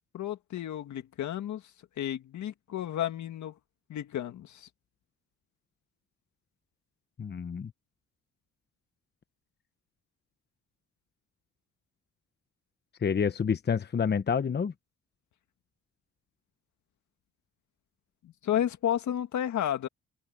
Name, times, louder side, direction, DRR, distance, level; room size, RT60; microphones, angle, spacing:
voice 1, 0.1-1.6 2.0-3.5 3.9-4.7 18.2-19.9, left 11 dB, 70° left, 2.0 m, -32 dB
voice 2, 7.2-7.7 13.0-14.7, left 6 dB, 35° left, 1.0 m, -28 dB
cardioid pair, 90°, 30 cm